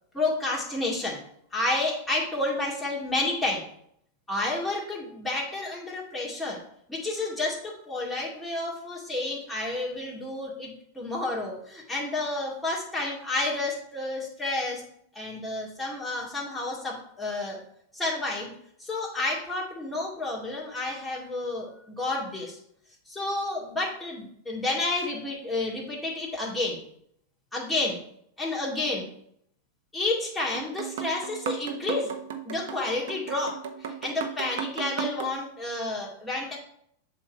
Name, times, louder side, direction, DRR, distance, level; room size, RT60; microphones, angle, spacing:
voice 1, 0.1-1.2 1.5-3.6 4.3-6.6 6.9-14.8 15.1-17.6 17.9-22.6 23.1-26.8 27.5-28.0 28.4-29.1 29.9-32.1 32.4-36.6, left 2 dB, 10° left, -4 dB, 2.3 m, -30 dB
sound 1, 30.5-35.3, right 8 dB, 75° right, 0.9 m, -36 dB
7.4 x 3.1 x 5.3 m, 0.70 s
hypercardioid pair, 120°, 0 cm